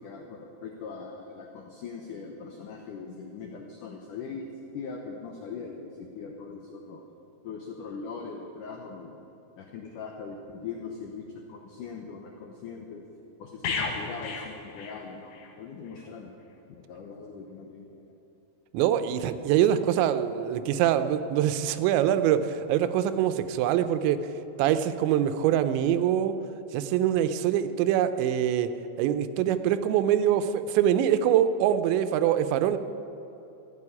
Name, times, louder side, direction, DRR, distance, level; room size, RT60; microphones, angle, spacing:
voice 1, 0.0-7.0 7.4-9.2 9.6-13.0 13.4-16.3 16.7-18.1, left 5 dB, 90° left, 1 dB, 1.8 m, -41 dB
sound 1, 13.6-15.5 15.8-16.0, left 4 dB, 65° left, 2.0 m, -34 dB
voice 2, 18.7-24.2 24.6-26.3 26.7-28.7 29.0-32.8, right 10 dB, 85° right, 11 dB, 3.0 m, -24 dB
14.5 x 7.6 x 9.8 m, 2.9 s
omnidirectional pair, 5.1 m